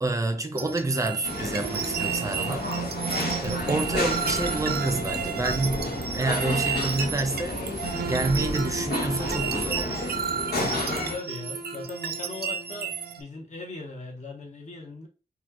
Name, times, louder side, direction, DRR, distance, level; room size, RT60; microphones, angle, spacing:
voice 1, 0.0-2.7 3.4-7.6 8.1-10.2, right 2 dB, 20° right, 0.5 m, -28 dB
sound 1, 0.6-13.2, right 6 dB, 85° right, 0.5 m, -32 dB
sound 2, 1.2-11.2, left 2 dB, 85° left, 1.2 m, -32 dB
sound 3, 3.4-9.8, left 1 dB, 25° left, 1.2 m, -41 dB
voice 2, 10.5-15.1, left 3 dB, 45° left, 1.0 m, -39 dB
4.1 x 2.3 x 2.9 m
wide cardioid pair, 135°, 16 cm